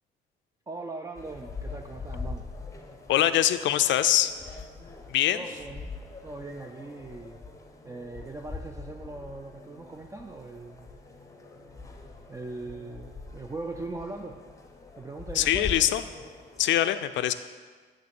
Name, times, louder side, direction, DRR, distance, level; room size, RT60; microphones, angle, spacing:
voice 1, 0.7-2.4 5.3-5.9 6.2-7.4 7.8-10.9 12.3-14.4 15.0-15.7, right 2 dB, 15° right, 4 dB, 0.4 m, -40 dB
sound 1, 1.1-16.8, left 4 dB, 15° left, 0.8 m, -43 dB
voice 2, 3.1-4.3 5.1-5.5 15.3-16.0 16.6-17.3, left 12 dB, 70° left, 12 dB, 0.4 m, -23 dB
8.6 x 3.2 x 6.0 m, 1.5 s
cardioid pair, 90°, 20 cm